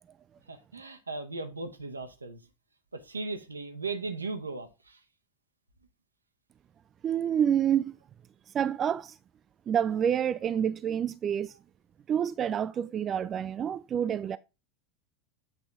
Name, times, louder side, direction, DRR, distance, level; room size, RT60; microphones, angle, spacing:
voice 1, 0.5-2.4 2.9-5.0, right 3 dB, 90° right, 0.9 m, -37 dB
voice 2, 7.0-7.9 8.5-9.2 9.7-11.5 12.1-14.4, right 9 dB, 30° right, 0.3 m, -28 dB
8.4 x 3.8 x 3.5 m
figure-of-eight pair, 85°, 0 cm